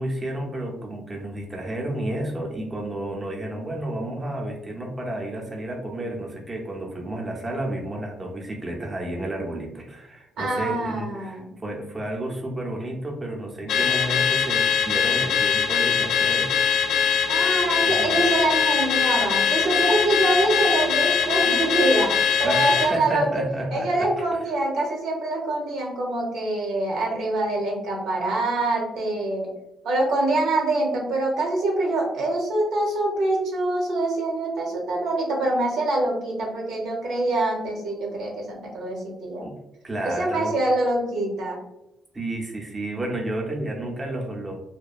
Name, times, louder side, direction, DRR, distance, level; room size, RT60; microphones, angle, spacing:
voice 1, 0.0-16.5 17.9-18.2 22.4-24.2 39.4-39.5 39.8-40.5 42.1-44.6, right 1 dB, 25° right, 0 dB, 0.7 m, -31 dB
voice 2, 10.4-11.4 17.3-22.1 22.4-23.4 23.7-29.5 29.8-39.5 40.0-41.6, right 2 dB, 80° right, -1 dB, 0.9 m, -25 dB
Car / Alarm, 13.7-22.9, left 6 dB, 80° left, 0.3 m, -22 dB
2.7 x 2.2 x 2.4 m, 0.89 s
cardioid pair, 90°, 0 cm